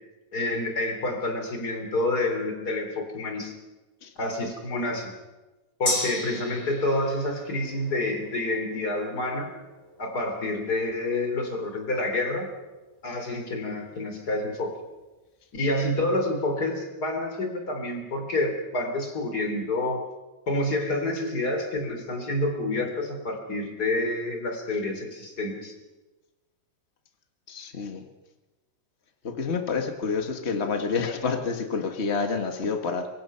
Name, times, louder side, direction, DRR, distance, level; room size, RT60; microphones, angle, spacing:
voice 1, 0.3-3.6 4.2-5.1 5.8-9.5 10.0-12.5 13.0-14.7 15.5-20.0 20.5-25.7, left 2 dB, 25° left, 4 dB, 3.9 m, -28 dB
Gong, 5.9-13.6 14.0-14.1, left 1 dB, 10° left, 4.9 m, -37 dB
voice 2, 27.5-28.0 29.2-33.1, left 5 dB, 80° left, 5 dB, 0.5 m, -28 dB
24.5 x 23.0 x 5.7 m, 1.1 s
omnidirectional pair, 4.0 m